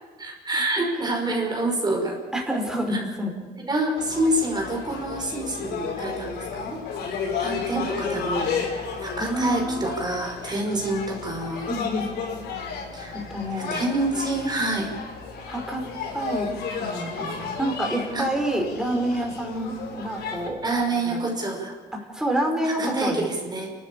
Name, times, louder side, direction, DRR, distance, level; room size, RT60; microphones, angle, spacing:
voice 1, 0.2-2.2 2.9-3.0 3.6-6.8 7.4-11.7 12.9-14.9 16.1-16.2 18.1-18.2 20.6-21.8 22.6-23.7, right 2 dB, 25° right, 1 dB, 5.4 m, -27 dB
voice 2, 2.3-3.3 7.7-7.9 9.2-9.8 11.7-12.2 13.1-13.8 15.4-15.8 16.1-16.5 16.8-20.6 20.9-21.3 21.9-23.3, right 1 dB, 5° right, 1 dB, 5.4 m, -28 dB
sound 1, 4.0-20.5, left 5 dB, 75° left, 5.6 m, -33 dB
28.5 x 12.5 x 8.6 m, 1.4 s
cardioid pair, 110°, 17 cm